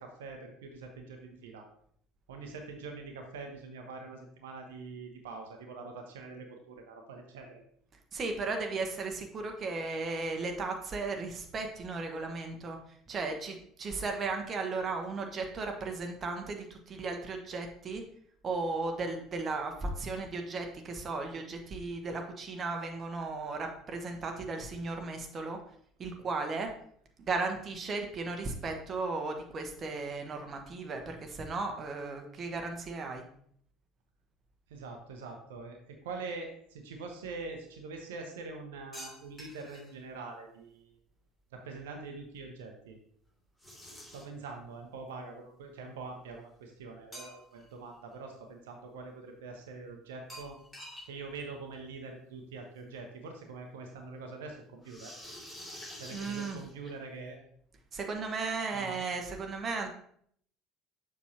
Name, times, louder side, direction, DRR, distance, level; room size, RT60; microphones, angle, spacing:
voice 1, 0.0-1.7 2.3-7.6 34.7-41.0 41.5-43.0 44.1-50.6 51.0-55.1 55.9-57.4 58.7-59.0, right 3 dB, 70° right, 3 dB, 0.9 m, -44 dB
voice 2, 8.1-12.8 13.1-18.0 18.4-25.6 26.0-26.7 27.2-33.2 56.1-56.6 57.9-59.9, right 3 dB, 35° right, 4 dB, 1.1 m, -35 dB
sound 1, 38.9-39.9 43.6-44.4 47.1-47.7 48.1-48.2 50.3-51.1 51.3-51.4 51.7-51.8 53.0-53.1 54.8-57.2, equal, 15° left, 3.0 m, -47 dB
7.0 x 6.1 x 2.9 m, 0.63 s
figure-of-eight pair, 60°, 0 cm